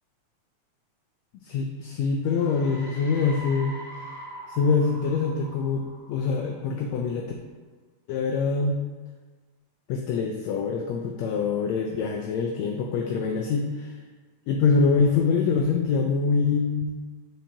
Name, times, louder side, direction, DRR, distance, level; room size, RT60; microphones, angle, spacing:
voice 1, 1.4-3.8 4.5-5.8 6.1-7.3 8.1-8.8 9.9-14.0 14.5-16.9, left 5 dB, 80° left, 2 dB, 1.7 m, -24 dB
sound 1, 2.2-6.8, right 1 dB, 35° left, 1.8 m, -43 dB
10.0 x 4.6 x 2.8 m, 1.4 s
omnidirectional pair, 3.4 m